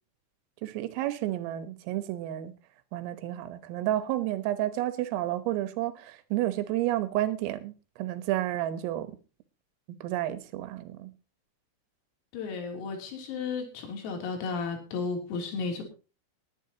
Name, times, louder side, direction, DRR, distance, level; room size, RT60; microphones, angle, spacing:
voice 1, 0.6-2.5 2.9-9.2 10.0-11.1, right 14 dB, 80° right, 3.8 m, -31 dB
voice 2, 12.3-15.8, left 4 dB, 85° left, 5.9 m, -33 dB
20.0 x 11.5 x 2.9 m
omnidirectional pair, 5.9 m